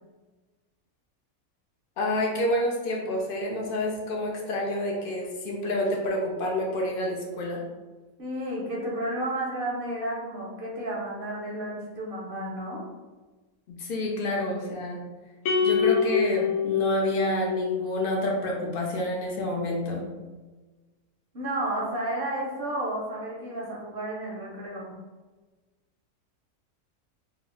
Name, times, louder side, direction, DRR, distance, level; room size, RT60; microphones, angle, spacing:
voice 1, 2.0-7.6 13.7-15.0 15.6-20.1, left 1 dB, 70° left, -1 dB, 0.5 m, -28 dB
voice 2, 8.2-12.9 21.3-24.9, right 1 dB, 55° right, -5 dB, 0.6 m, -32 dB
sound 1, 15.5-17.9, left 6 dB, 85° left, 1.1 m, -25 dB
2.7 x 2.1 x 3.7 m, 1.3 s
omnidirectional pair, 1.5 m